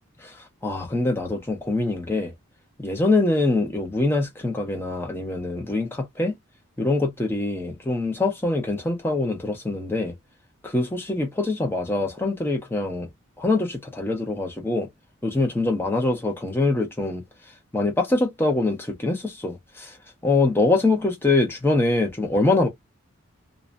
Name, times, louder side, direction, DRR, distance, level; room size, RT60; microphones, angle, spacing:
voice 1, 0.2-2.3 2.8-6.3 6.8-10.1 10.6-13.1 13.4-14.9 15.2-17.2 17.7-20.0 20.2-22.7, left 2 dB, 10° left, 0.7 m, -24 dB
2.7 x 2.2 x 2.5 m
head